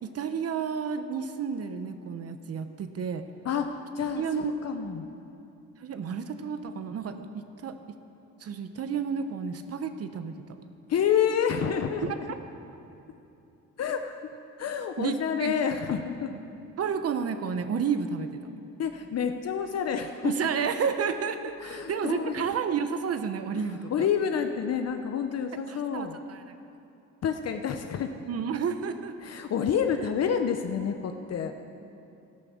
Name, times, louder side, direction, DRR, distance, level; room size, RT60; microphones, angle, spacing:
voice 1, 0.0-3.2 4.2-4.5 4.8-5.0 5.8-8.0 8.4-10.6 12.0-12.2 15.0-15.6 16.3-16.4 16.8-18.4 20.2-24.1 25.7-26.5 28.2-29.1, right 6 dB, 55° right, 9 dB, 0.9 m, -31 dB
voice 2, 3.9-5.0 10.9-12.2 13.8-14.2 14.6-16.3 18.8-20.3 21.6-22.5 23.6-26.2 27.2-28.1 29.2-31.5, left 7 dB, 55° left, 6 dB, 0.8 m, -28 dB
12.0 x 12.0 x 7.2 m, 2.8 s
cardioid pair, 90°, 30 cm